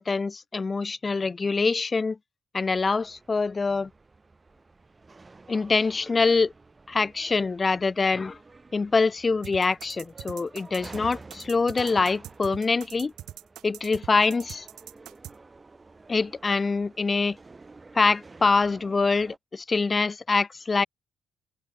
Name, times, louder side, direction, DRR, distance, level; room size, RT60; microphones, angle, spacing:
voice 1, 0.0-2.2 2.5-3.9 5.5-6.5 6.9-8.4 8.7-13.1 13.6-14.7 16.1-17.4 17.9-20.9, left 4 dB, 30° left, 0.4 m, -24 dB
sound 1, 2.6-19.4, right 3 dB, 25° right, 2.6 m, -50 dB
sound 2, 9.4-15.3, right 13 dB, 80° right, 0.5 m, -42 dB
cardioid pair, 90°, 0 cm